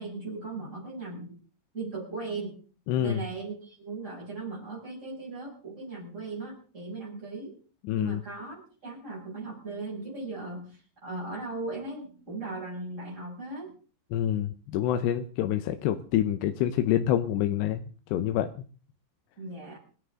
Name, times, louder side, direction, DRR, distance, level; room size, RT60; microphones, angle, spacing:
voice 1, 0.0-1.4 1.7-2.6 3.0-7.6 8.0-13.7 19.4-19.8, right 3 dB, 15° right, -5 dB, 7.1 m, -38 dB
voice 2, 2.9-3.2 7.8-8.2 14.1-17.8 18.1-18.5, left 11 dB, 85° left, 8 dB, 3.1 m, -27 dB
26.5 x 14.0 x 3.8 m, 0.40 s
omnidirectional pair, 4.8 m